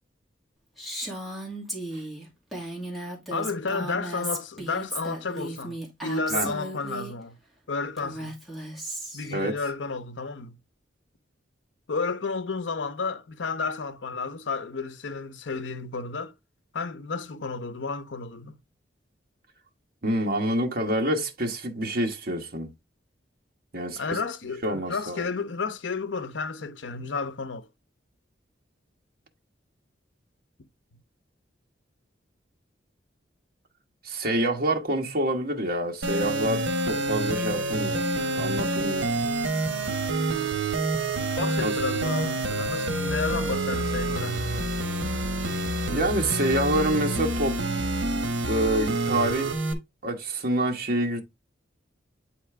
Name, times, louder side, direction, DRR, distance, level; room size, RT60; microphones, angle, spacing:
Female speech woman speaking, 0.8-7.1 8.0-9.3, right 1 dB, ahead, 2.4 m, -35 dB
voice 1, 3.3-7.4 7.7-8.4 9.1-10.6 11.9-16.3 16.7-18.6 24.0-27.7 37.4-37.5 41.4-44.7, left 4 dB, 80° left, 0.7 m, -32 dB
voice 2, 20.0-22.7 23.7-24.0 24.6-25.3 34.0-38.1 38.4-39.1 41.6-41.7 45.9-47.6 48.5-49.6 50.0-51.2, right 1 dB, 55° right, 1.4 m, -27 dB
sound 1, 36.0-49.7, right 2 dB, 80° right, 1.3 m, -27 dB
8.5 x 4.3 x 3.3 m
head